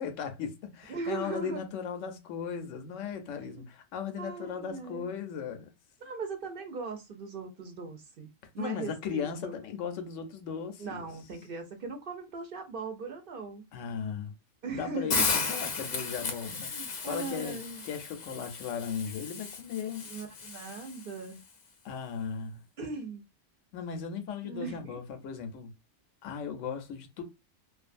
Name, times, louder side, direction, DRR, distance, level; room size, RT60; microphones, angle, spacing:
voice 1, 0.0-5.7 8.6-11.1 13.7-14.3 14.7-17.6 17.8-20.1 21.8-22.6 23.7-25.7 26.2-27.2, left 7 dB, 90° left, 1.0 m, -37 dB
voice 2, 0.9-1.6 3.3-3.7 4.2-5.1 6.0-8.3 8.5-9.5 10.8-13.6 14.6-15.3 16.5-17.8 20.0-21.4 22.8-23.2 24.4-25.0, right 4 dB, 55° right, 0.7 m, -39 dB
Hiss, 15.1-21.2, left 5 dB, 50° left, 0.5 m, -34 dB
2.5 x 2.3 x 2.4 m
omnidirectional pair, 1.2 m